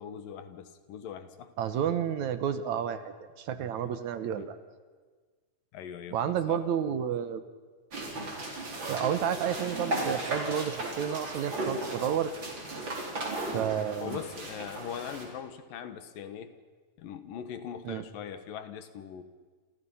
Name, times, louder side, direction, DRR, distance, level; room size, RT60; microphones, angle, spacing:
voice 1, 0.0-1.5 3.5-3.9 4.4-4.5 5.7-6.6 14.0-16.5 17.0-19.2, left 8 dB, 80° left, 10 dB, 3.2 m, -41 dB
voice 2, 1.6-4.6 6.1-7.4 8.9-12.3 13.5-14.2 17.9-18.0, right 9 dB, 65° right, 11 dB, 2.2 m, -31 dB
sound 1, 7.9-15.2, right 1 dB, 35° right, 4.8 m, -35 dB
28.5 x 28.5 x 5.7 m, 1.5 s
omnidirectional pair, 3.9 m